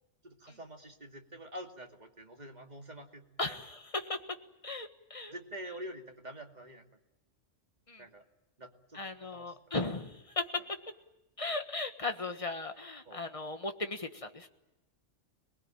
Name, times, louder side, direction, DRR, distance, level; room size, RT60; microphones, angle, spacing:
voice 1, 0.2-3.5 5.3-6.8 8.0-8.2 8.6-9.0 9.3-9.5 13.1-13.3, right 1 dB, 35° right, 3 dB, 2.5 m, -46 dB
voice 2, 3.4-4.4 4.6-5.3 7.9-8.0 8.9-10.6 11.4-14.5, left 3 dB, 25° left, 7 dB, 1.6 m, -37 dB
26.5 x 20.0 x 9.0 m, 1.0 s
omnidirectional pair, 1.2 m